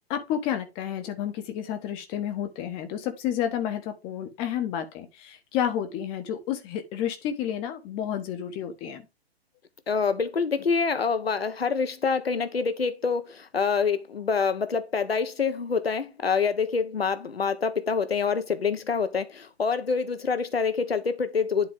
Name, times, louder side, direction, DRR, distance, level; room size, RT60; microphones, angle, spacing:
voice 1, 0.1-9.0, left 10 dB, 15° left, 1.1 m, -30 dB
voice 2, 9.9-21.7, left 5 dB, 70° left, 1.3 m, -26 dB
11.0 x 4.1 x 3.7 m
figure-of-eight pair, 135°, 32 cm